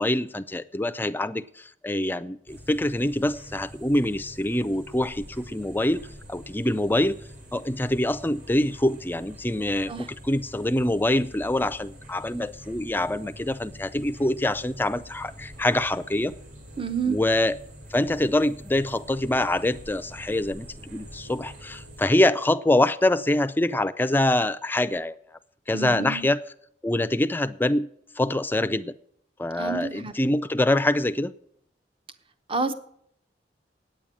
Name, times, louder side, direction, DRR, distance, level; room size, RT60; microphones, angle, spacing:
voice 1, 0.0-7.2 7.5-16.3 17.1-17.6 17.9-25.2 25.7-26.4 26.8-27.9 28.2-28.9 29.4-31.3, left 1 dB, 10° left, 13 dB, 0.4 m, -25 dB
sound 1, 2.5-22.1, equal, 50° right, 3.9 m, -45 dB
voice 2, 16.8-17.2 25.7-26.3 29.6-30.1 32.5-32.7, right 4 dB, 30° right, 11 dB, 0.8 m, -29 dB
9.1 x 8.6 x 8.9 m, 0.67 s
head